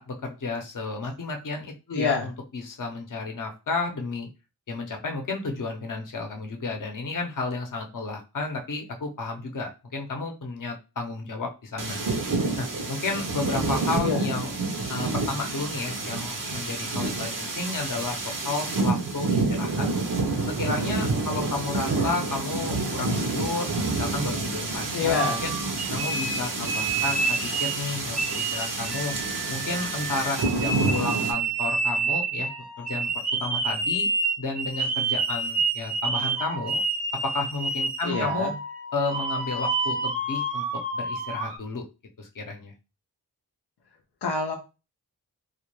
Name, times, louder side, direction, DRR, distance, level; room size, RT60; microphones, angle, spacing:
voice 1, 0.0-4.3 4.7-12.0 12.6-14.5 14.9-19.9 20.6-25.5 25.9-29.1 29.5-32.5 32.8-33.1 33.4-34.1 34.4-36.8 37.2-38.5 38.9-40.7 40.9-41.8 42.2-42.7, left 3 dB, 55° left, 3 dB, 0.7 m, -32 dB
voice 2, 1.9-2.3 14.0-14.2 24.9-25.4 38.0-38.5 44.2-44.6, left 5 dB, 90° left, 1 dB, 0.6 m, -26 dB
sound 1, 11.8-31.3, right 3 dB, 55° right, 0.6 m, -28 dB
sound 2, 25.2-27.8 28.2-41.6, right 3 dB, 80° right, 0.9 m, -29 dB
2.3 x 2.2 x 3.0 m, 0.29 s
cardioid pair, 45°, 39 cm